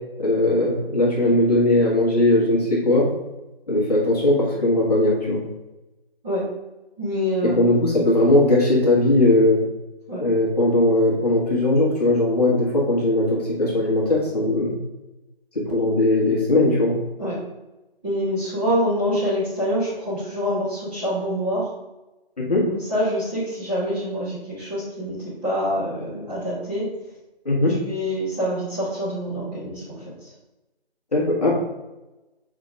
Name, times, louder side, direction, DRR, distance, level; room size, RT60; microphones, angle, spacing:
voice 1, 0.2-3.1 3.7-5.4 7.4-9.6 10.2-14.8 15.5-17.0 22.5-22.7 27.4-27.8 31.1-31.5, left 2 dB, 40° left, -4 dB, 1.5 m, -19 dB
voice 2, 7.0-7.5 10.1-10.2 17.2-17.4 18.0-21.7 22.7-25.2 25.4-26.8 27.7-30.3, equal, 10° right, -12 dB, 1.7 m, -26 dB
4.5 x 4.1 x 5.2 m, 1.0 s
figure-of-eight pair, 165°, 31 cm